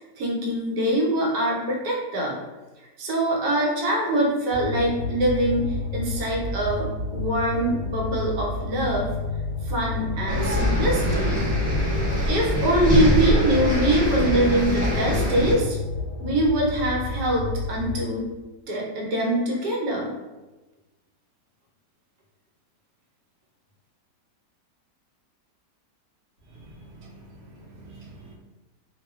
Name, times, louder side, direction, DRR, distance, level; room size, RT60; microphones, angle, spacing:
voice 1, 0.2-2.4 3.0-9.1 9.6-11.4 12.3-15.8 16.2-18.3 18.7-20.1, right 1 dB, 75° right, -3 dB, 1.2 m, -24 dB
sound 1, 4.5-18.0, left 3 dB, 60° left, 0.8 m, -31 dB
sound 2, 10.3-15.5, equal, 5° right, 0.9 m, -23 dB
voice 2, 27.0-28.3, right 2 dB, 55° right, -4 dB, 0.8 m, -46 dB
2.7 x 2.4 x 2.3 m, 1.1 s
omnidirectional pair, 1.8 m